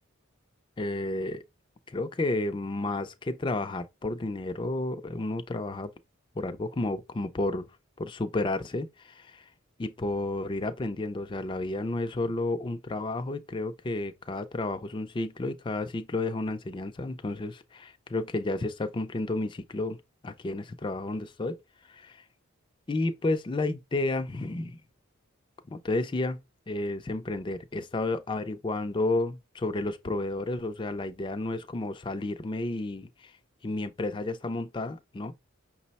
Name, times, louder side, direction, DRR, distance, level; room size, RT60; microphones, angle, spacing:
voice 1, 0.8-1.4 1.9-5.9 6.4-7.7 8.0-9.4 9.8-20.0 20.2-21.6 21.9-22.2 22.9-24.8 25.7-26.4 26.7-33.3 33.6-35.3, left 2 dB, 25° left, 0.4 m, -31 dB
5.9 x 2.0 x 4.0 m
head